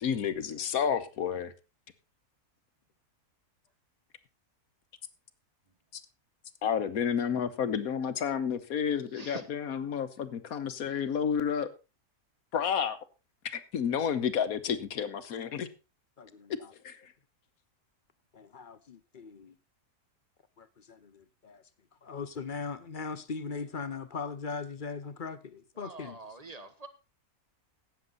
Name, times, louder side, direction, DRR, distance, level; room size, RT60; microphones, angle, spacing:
voice 1, 0.0-1.5 5.9-6.0 6.6-11.7 12.5-13.0 13.4-15.7 16.8-17.1, left 7 dB, 70° left, 1.4 m, -30 dB
voice 2, 9.1-9.4 10.9-11.0 25.8-26.9, right 2 dB, 25° right, 1.2 m, -44 dB
voice 3, 16.2-16.7 18.3-19.6 20.6-21.6 22.0-26.2, left 5 dB, 45° left, 0.8 m, -40 dB
17.0 x 7.3 x 3.9 m
omnidirectional pair, 1.6 m